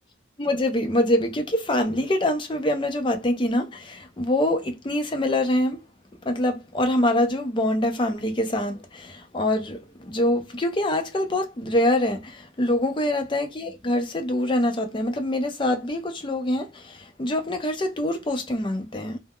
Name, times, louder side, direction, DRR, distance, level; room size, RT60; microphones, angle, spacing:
voice 1, 0.4-5.8 6.2-19.2, left 1 dB, 25° left, 0.5 m, -25 dB
2.2 x 2.1 x 3.4 m
head